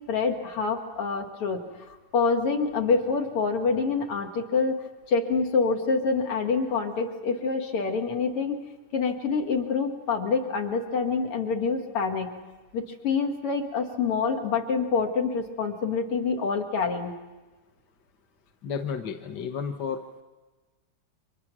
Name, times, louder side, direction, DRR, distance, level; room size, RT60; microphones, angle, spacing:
voice 1, 0.1-1.6 2.1-4.8 5.1-8.6 8.9-12.4 12.7-17.1, left 5 dB, 90° left, 3 dB, 2.9 m, -26 dB
voice 2, 18.6-20.2, left 6 dB, 55° left, 4 dB, 1.5 m, -32 dB
30.0 x 25.5 x 6.2 m, 1.2 s
omnidirectional pair, 2.4 m